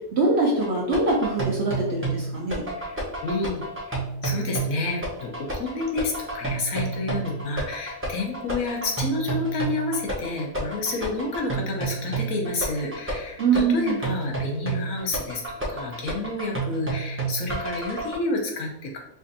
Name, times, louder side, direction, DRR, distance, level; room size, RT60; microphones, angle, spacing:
voice 1, 0.1-2.6 13.4-14.0, right 3 dB, 60° right, -2 dB, 0.7 m, -23 dB
sound 1, 0.6-18.2, right 3 dB, 15° right, 0.5 m, -30 dB
voice 2, 2.8-3.6 3.9-19.0, left 3 dB, 70° left, 1 dB, 1.1 m, -30 dB
5.0 x 2.5 x 2.6 m, 0.79 s
omnidirectional pair, 1.6 m